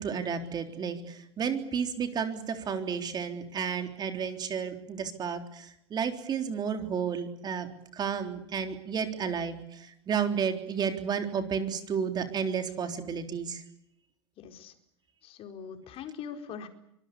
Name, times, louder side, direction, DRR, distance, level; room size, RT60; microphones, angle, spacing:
voice 1, 0.0-13.6, right 7 dB, 30° right, 6 dB, 3.7 m, -32 dB
voice 2, 14.4-14.7 15.2-16.7, left 7 dB, 40° left, 5 dB, 4.6 m, -42 dB
25.0 x 20.5 x 9.8 m, 0.78 s
hypercardioid pair, 110°, 15 cm